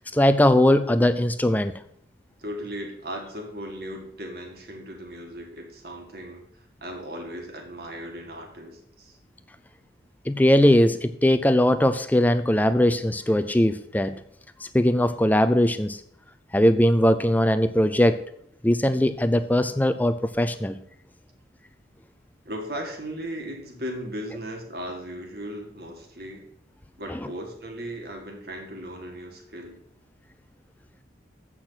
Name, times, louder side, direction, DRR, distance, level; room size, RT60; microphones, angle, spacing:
voice 1, 0.0-1.7 10.3-14.2 14.6-16.0 16.5-18.2 18.6-20.8 27.1-27.3, left 1 dB, 10° left, 11 dB, 0.4 m, -20 dB
voice 2, 2.4-9.2 22.5-26.5 27.0-29.8, equal, 55° right, 2 dB, 2.0 m, -37 dB
8.7 x 6.1 x 5.8 m, 0.70 s
head